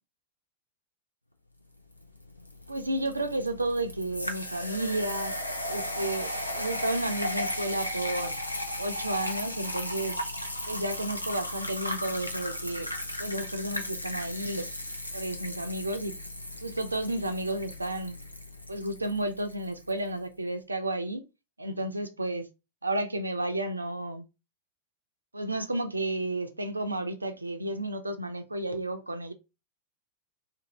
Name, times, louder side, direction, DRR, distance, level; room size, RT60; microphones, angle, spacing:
sound 1, 2.0-20.0, left 1 dB, 85° left, 0.4 m, -36 dB
voice 1, 2.7-5.4 5.7-8.4 8.8-10.2 10.7-12.9 13.2-14.7 15.1-16.2 16.6-18.2 18.7-21.2 21.6-22.5 22.8-24.2 25.3-29.3, right 1 dB, 80° right, 0.4 m, -32 dB
2.6 x 2.5 x 2.9 m
figure-of-eight pair, 90°, 0 cm